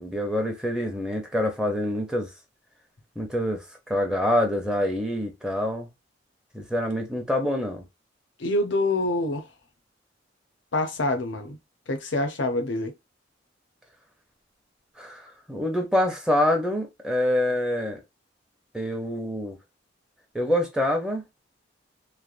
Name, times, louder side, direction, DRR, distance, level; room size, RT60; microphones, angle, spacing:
voice 1, 0.0-2.3 3.2-5.9 6.5-7.8 15.0-18.0 18.7-19.6 20.3-21.2, left 1 dB, 5° right, 0.6 m, -26 dB
voice 2, 8.4-9.5 10.7-11.6 11.9-12.9, left 2 dB, 80° left, 0.7 m, -26 dB
3.2 x 2.1 x 2.4 m
head